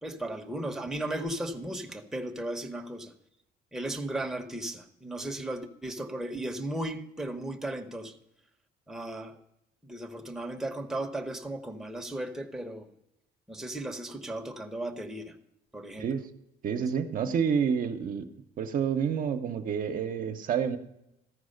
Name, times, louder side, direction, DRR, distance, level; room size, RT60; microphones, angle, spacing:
voice 1, 0.0-3.1 3.7-8.1 8.9-9.4 9.8-12.9 13.5-15.3 15.7-16.1, right 1 dB, 5° right, 3 dB, 0.9 m, -36 dB
voice 2, 16.6-18.3 18.6-20.8, right 7 dB, 55° right, 6 dB, 0.8 m, -29 dB
14.0 x 4.7 x 6.5 m, 0.85 s
cardioid pair, 110°, 17 cm